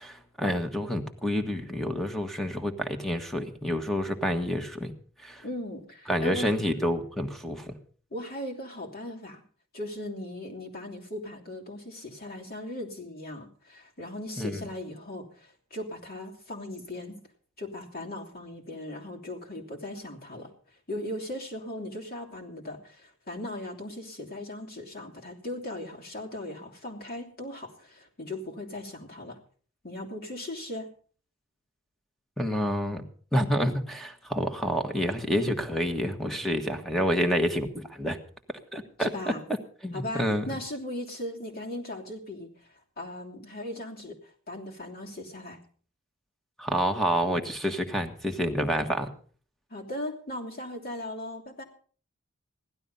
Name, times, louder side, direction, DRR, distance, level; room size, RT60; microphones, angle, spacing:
voice 1, 0.0-4.9 5.2-5.4 6.1-7.7 14.4-14.6 32.4-33.0 33.3-38.2 38.7-39.1 39.8-40.5 46.6-49.1, equal, ahead, 6 dB, 1.5 m, -28 dB
voice 2, 5.4-6.6 8.1-9.4 9.7-17.2 17.6-20.5 20.9-29.4 29.8-30.9 39.0-39.4 39.9-45.6 49.7-51.6, left 1 dB, 45° left, 0 dB, 3.1 m, -38 dB
16.0 x 12.0 x 5.5 m, 0.43 s
head